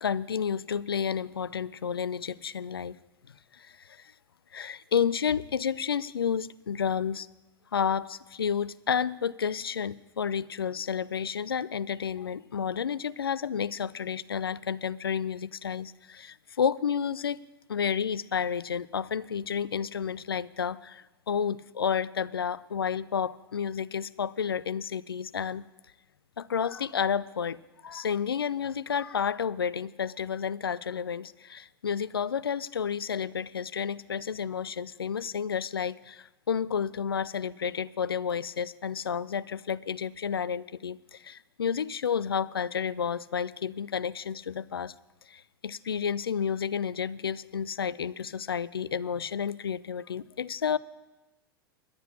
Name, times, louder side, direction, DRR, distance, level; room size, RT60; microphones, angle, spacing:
voice 1, 0.0-3.0 3.6-3.7 4.5-7.3 7.7-17.4 17.7-25.6 26.4-44.9 45.3-50.8, left 7 dB, 80° left, 19 dB, 0.4 m, -31 dB
11.5 x 8.0 x 8.6 m, 1.1 s
figure-of-eight pair, 90°, 12 cm